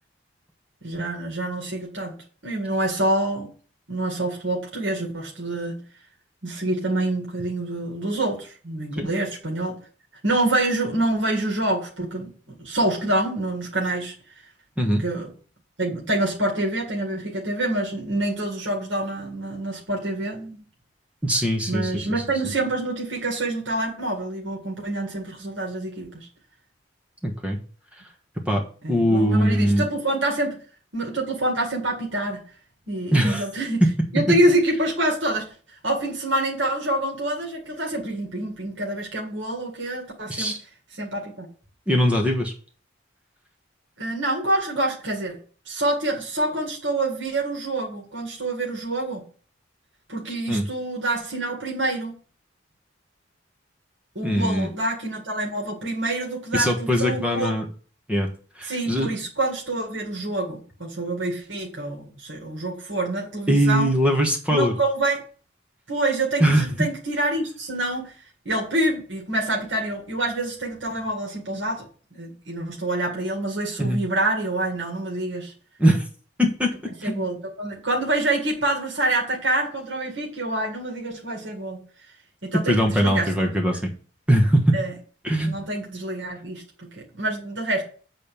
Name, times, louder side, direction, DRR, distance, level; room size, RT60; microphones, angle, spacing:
voice 1, 0.8-3.5 3.9-5.8 6.4-9.8 10.2-14.1 15.0-15.3 15.8-20.6 21.7-26.3 28.8-30.6 30.9-32.4 32.9-33.8 34.1-35.5 35.8-40.5 41.0-41.5 44.0-45.4 45.7-49.2 50.1-52.1 54.2-57.7 58.7-63.9 64.5-65.2 65.9-68.1 68.5-75.5 77.0-81.8 82.4-83.5 84.7-84.9 85.5-87.8, right 2 dB, 65° right, -1 dB, 2.0 m, -26 dB
voice 2, 21.2-22.5 27.2-27.6 27.9-28.0 28.4-29.8 33.1-33.4 33.8-33.9 40.3-40.6 41.9-42.5 50.5-50.7 54.2-54.7 56.5-57.6 58.1-58.3 58.5-59.1 63.5-64.7 66.4-66.9 73.8-74.0 75.8-76.1 76.4-77.2 82.5-83.9 84.3-84.8 85.2-85.6, equal, 5° right, 1 dB, 1.3 m, -21 dB
8.6 x 4.2 x 7.0 m, 0.42 s
head